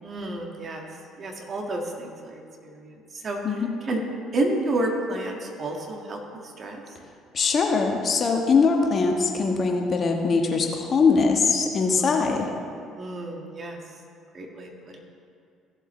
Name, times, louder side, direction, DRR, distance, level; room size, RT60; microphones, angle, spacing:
voice 1, 0.0-0.9 1.2-3.5 3.8-4.0 4.3-6.8 11.9-12.5 13.0-13.8 14.3-15.0, right 2 dB, 40° right, 1 dB, 1.8 m, -31 dB
voice 2, 7.3-12.5, left 4 dB, 40° left, 2 dB, 1.3 m, -22 dB
16.0 x 7.5 x 3.2 m, 2.3 s
hypercardioid pair, 55°, 0 cm